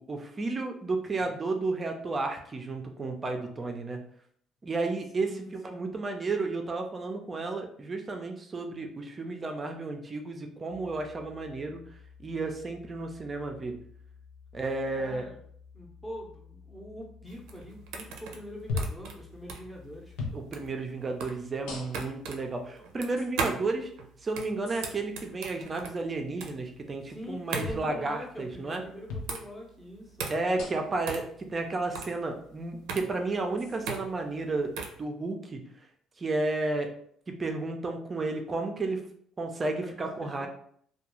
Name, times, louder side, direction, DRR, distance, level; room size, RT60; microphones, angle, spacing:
voice 1, 0.0-4.0 4.6-11.8 12.2-13.7 14.5-15.2 20.3-23.9 24.2-28.8 30.3-31.2 31.5-34.7 35.0-35.7 36.2-36.9 37.3-39.0 39.4-40.5, right 3 dB, 30° right, 4 dB, 0.4 m, -32 dB
voice 2, 5.2-5.9 15.0-15.4 15.7-20.3 27.0-30.3 39.8-40.5, equal, 10° left, -1 dB, 0.7 m, -43 dB
sound 1, 10.7-20.7, left 6 dB, 30° left, 0.9 m, -53 dB
sound 2, 17.3-35.0, right 5 dB, 85° right, 0.4 m, -38 dB
sound 3, 18.7-19.1 20.2-20.4 21.7-22.2 23.2-23.3 24.7-24.9 27.6-27.9 29.1-29.3 30.6-31.0 32.1-32.2 33.6-33.8, left 3 dB, 90° left, 0.6 m, -36 dB
2.3 x 2.2 x 3.0 m, 0.62 s
cardioid pair, 105°, 0 cm